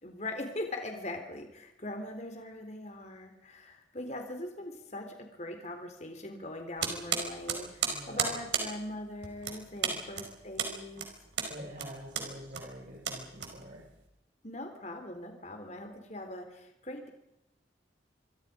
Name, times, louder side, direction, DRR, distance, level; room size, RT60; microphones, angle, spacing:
voice 1, 0.0-11.1 14.4-17.1, left 1 dB, 40° left, 5 dB, 3.8 m, -41 dB
sound 1, 6.8-14.0, right 7 dB, 70° right, 4.9 m, -35 dB
voice 2, 7.8-8.3 9.9-10.0 11.5-13.8, equal, 45° right, -4 dB, 6.3 m, -46 dB
27.5 x 24.5 x 5.2 m, 0.84 s
head